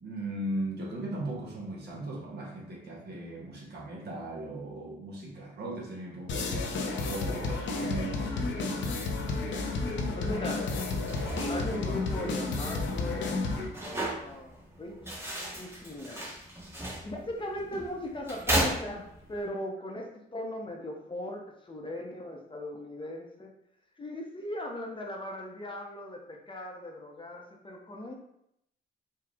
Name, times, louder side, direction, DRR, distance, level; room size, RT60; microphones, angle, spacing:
voice 1, 0.0-8.5, right 1 dB, 55° right, -2 dB, 1.4 m, -38 dB
sound 1, 6.3-13.7, left 3 dB, 65° left, 0.8 m, -31 dB
voice 2, 10.1-10.8 11.5-15.0 15.4-16.3 17.0-23.5 24.0-28.1, left 1 dB, 25° left, 0 dB, 0.8 m, -38 dB
sound 2, 11.0-19.5, right 1 dB, 10° right, 1.2 m, -36 dB
4.8 x 2.3 x 3.5 m, 0.76 s
cardioid pair, 90°, 20 cm